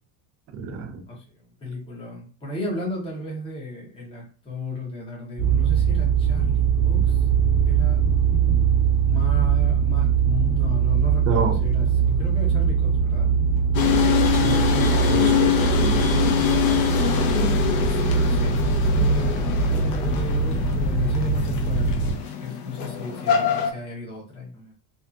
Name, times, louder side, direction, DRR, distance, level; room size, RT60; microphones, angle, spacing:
voice 1, 0.5-1.0 11.3-11.6 12.0-12.2 14.3-16.1, right 5 dB, 35° right, 0.4 m, -29 dB
voice 2, 1.1-7.2 7.5-8.0 9.0-11.9 12.2-13.3 17.3-24.7, left 1 dB, 10° left, 0.7 m, -34 dB
sound 1, 5.4-22.1, right 5 dB, 50° left, 1.3 m, -21 dB
sound 2, 13.7-23.7, left 9 dB, 75° left, 0.7 m, -25 dB
2.6 x 2.5 x 2.4 m
cardioid pair, 155°, 44 cm